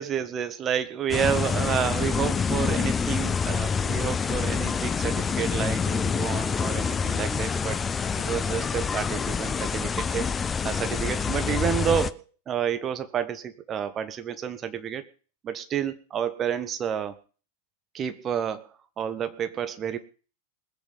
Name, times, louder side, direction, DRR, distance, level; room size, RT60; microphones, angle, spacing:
voice 1, 0.0-7.8 8.1-15.0 15.4-17.1 17.9-20.0, right 8 dB, 25° right, 10 dB, 1.4 m, -30 dB
sound 1, 1.1-12.1, left 6 dB, 20° left, 0.6 m, -27 dB
20.0 x 8.4 x 5.6 m, 0.38 s
figure-of-eight pair, 90°, 0 cm